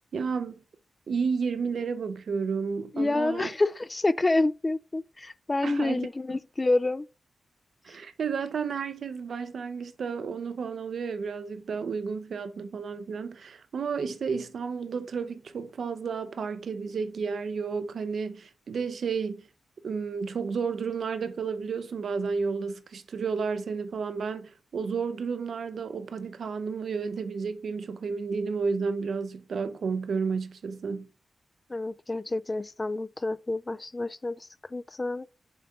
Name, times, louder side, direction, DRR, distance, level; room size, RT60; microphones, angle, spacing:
voice 1, 0.1-0.5 1.1-3.5 5.6-6.4 7.8-19.4 19.8-31.1, right 5 dB, 75° right, 0.6 m, -32 dB
voice 2, 2.9-7.1 31.7-35.3, left 2 dB, 25° left, 0.3 m, -28 dB
6.9 x 4.0 x 3.6 m
cardioid pair, 80°, 0 cm